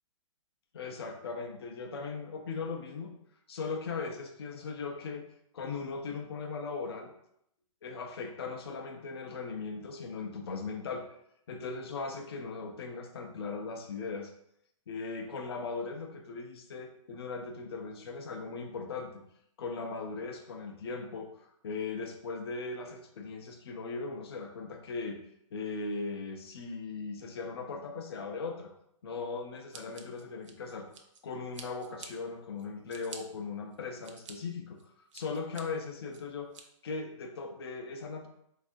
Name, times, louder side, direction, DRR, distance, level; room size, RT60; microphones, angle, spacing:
voice 1, 0.7-3.1 3.5-5.3 5.5-7.1 7.8-11.1 11.5-14.3 14.9-19.2 19.6-25.2 25.5-28.7 29.0-30.9 31.2-34.8 35.1-36.5 36.8-38.3, left 4 dB, 50° left, 4 dB, 0.4 m, -38 dB
Scissors, 29.7-31.2 31.5-32.1 32.6-33.2 33.7-34.3 34.8-35.6 36.1-36.6, right 5 dB, 60° right, 0.5 m, -48 dB
4.1 x 2.4 x 2.5 m, 0.75 s
hypercardioid pair, 180°, 17 cm